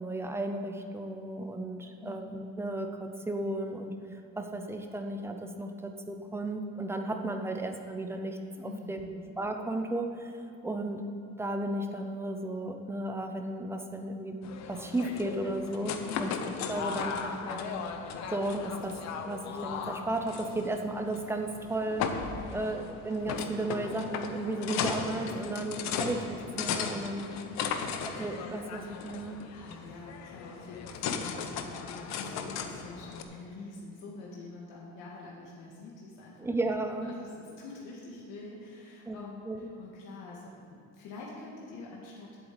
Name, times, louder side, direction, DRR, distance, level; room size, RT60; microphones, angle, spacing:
voice 1, 0.0-3.9 4.4-10.3 10.6-11.0 11.4-14.4 14.7-16.3 16.7-17.7 18.3-19.0 19.3-22.1 22.5-27.3 28.1-29.4 36.4-37.1 39.1-39.2 39.5-39.7, right 1 dB, 10° right, 4 dB, 0.6 m, -34 dB
voice 2, 8.6-9.2 16.1-16.6 22.4-22.6 27.4-27.9 29.5-36.5 37.0-42.4, left 3 dB, 75° left, -3 dB, 2.0 m, -46 dB
sound 1, 14.4-33.2, left 6 dB, 60° left, 0.9 m, -37 dB
8.0 x 7.8 x 8.7 m, 2.5 s
cardioid pair, 175°, 31 cm